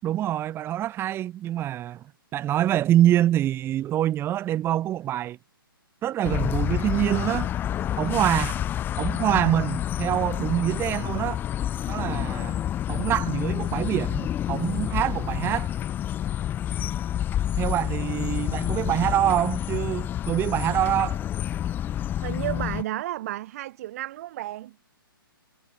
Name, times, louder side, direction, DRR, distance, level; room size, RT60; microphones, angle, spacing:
voice 1, 0.0-2.0 2.3-5.4 6.0-7.5 8.0-8.6 9.0-11.4 11.9-12.6 12.9-15.7 17.6-21.2, right 12 dB, 20° right, 6.8 m, -25 dB
sound 1, 6.2-22.8, left 11 dB, 15° left, 1.6 m, -28 dB
voice 2, 22.2-24.8, right 15 dB, 40° right, 5.8 m, -32 dB
figure-of-eight pair, 125°, 12 cm